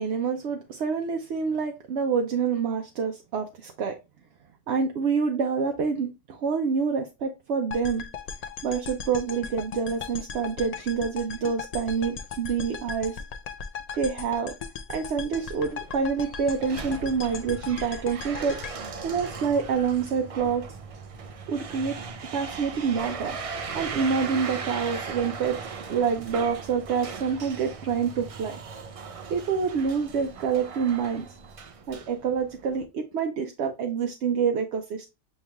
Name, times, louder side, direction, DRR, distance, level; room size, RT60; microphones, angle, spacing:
voice 1, 0.0-4.0 4.7-8.0 8.6-13.2 14.0-14.5 14.9-18.6 19.0-20.6 21.5-21.9 22.3-23.4 23.7-25.6 25.9-28.6 29.3-31.3 31.9-35.1, right 6 dB, 70° right, 4 dB, 0.9 m, -27 dB
sound 1, 7.7-19.9, left 6 dB, 65° left, 0.4 m, -38 dB
sound 2, 15.3-32.8, right 5 dB, 55° right, 0.4 m, -38 dB
7.2 x 3.2 x 2.2 m, 0.26 s
omnidirectional pair, 1.2 m